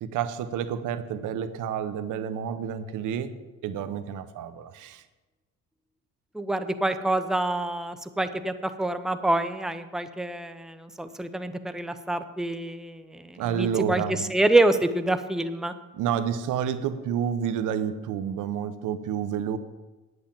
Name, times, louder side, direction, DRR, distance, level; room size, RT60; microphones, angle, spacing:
voice 1, 0.0-3.3 3.6-5.0 13.4-14.3 16.0-19.6, right 8 dB, 85° right, 12 dB, 0.9 m, -29 dB
voice 2, 6.3-15.7, right 2 dB, ahead, 9 dB, 0.7 m, -26 dB
10.0 x 8.0 x 7.1 m, 1.2 s
cardioid pair, 90°, 30 cm